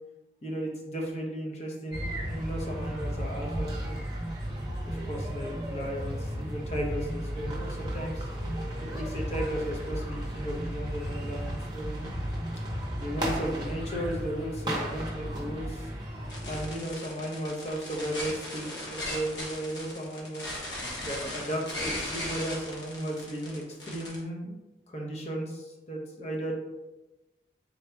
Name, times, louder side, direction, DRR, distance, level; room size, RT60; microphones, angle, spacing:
voice 1, 0.4-4.0 4.9-8.3 8.9-12.1 12.9-15.9 16.4-24.6 24.9-26.5, right 1 dB, 35° left, 0 dB, 0.7 m, -35 dB
sound 1, 1.9-16.8, equal, 25° right, 0.8 m, -34 dB
sound 2, 16.3-24.2, left 1 dB, 85° left, 1.1 m, -37 dB
3.8 x 2.3 x 4.4 m, 1.0 s
head